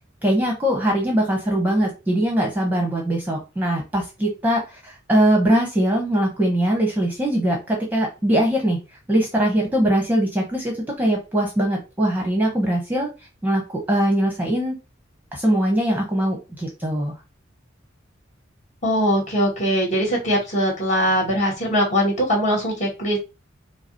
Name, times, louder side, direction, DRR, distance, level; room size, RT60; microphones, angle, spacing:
voice 1, 0.2-8.8 9.1-13.1 13.4-13.6 13.9-14.8 15.3-17.1, right 1 dB, 10° right, 0 dB, 1.1 m, -21 dB
voice 2, 18.8-23.2, equal, 35° left, -2 dB, 2.4 m, -21 dB
5.6 x 2.0 x 4.3 m, 0.28 s
head